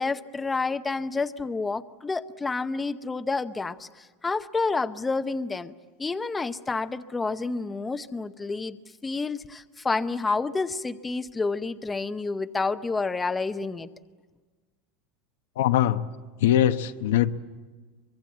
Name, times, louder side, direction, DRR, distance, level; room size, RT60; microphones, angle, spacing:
voice 1, 0.0-5.7 6.0-13.9, left 3 dB, 10° left, 0.7 m, -29 dB
voice 2, 15.6-16.1 16.4-17.3, left 11 dB, 90° left, 0.9 m, -22 dB
24.0 x 22.5 x 8.4 m
supercardioid pair, 145°, 0 cm